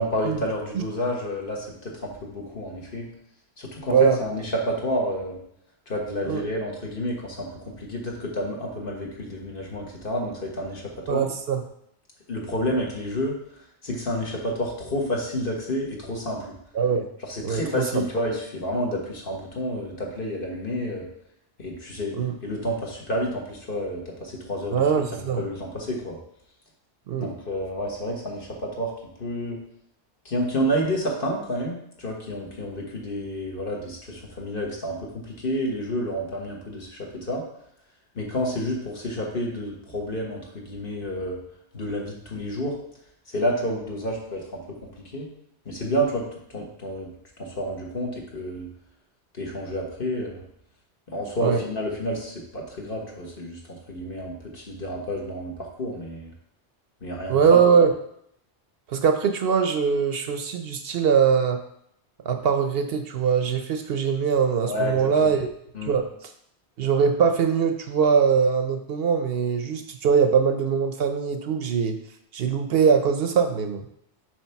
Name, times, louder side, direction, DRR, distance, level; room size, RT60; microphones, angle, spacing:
voice 1, 0.0-3.1 3.6-5.4 5.9-10.8 11.1-11.3 12.3-13.4 13.8-16.5 17.3-21.1 21.6-22.1 22.4-26.2 27.2-28.9 29.2-29.6 30.2-37.4 38.1-41.4 41.7-42.8 43.3-44.6 45.0-45.3 45.6-46.2 46.5-47.1 47.4-48.7 49.4-50.4 51.1-56.3 57.0-57.6 64.6-65.3 65.7-65.9, equal, 55° left, -1 dB, 1.6 m, -29 dB
voice 2, 11.1-11.6 16.7-17.1 17.4-18.0 22.1-22.3 24.7-25.4 27.1-27.3 51.4-51.6 57.3-57.9 58.9-61.6 62.2-65.5 65.8-66.3 66.8-72.0 72.3-73.8, right 6 dB, 65° right, 7 dB, 0.8 m, -22 dB
7.2 x 3.3 x 5.7 m, 0.72 s
omnidirectional pair, 1.2 m